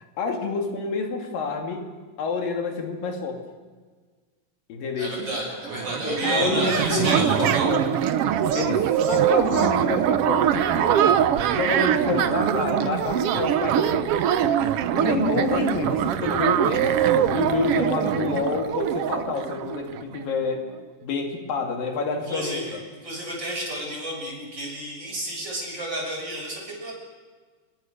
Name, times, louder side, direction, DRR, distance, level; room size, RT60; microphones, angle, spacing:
voice 1, 0.2-1.9 2.2-3.4 4.7-5.3 6.0-8.1 8.5-11.2 11.5-14.2 15.0-20.6 21.0-22.8, left 4 dB, 85° left, 3 dB, 4.1 m, -28 dB
voice 2, 5.0-7.7 22.3-22.8 23.0-26.9, right 1 dB, 30° right, -2 dB, 7.3 m, -31 dB
sound 1, 5.4-5.5 5.6-20.2, right 9 dB, 85° right, 1.3 m, -23 dB
25.5 x 22.0 x 6.6 m, 1.5 s
omnidirectional pair, 3.9 m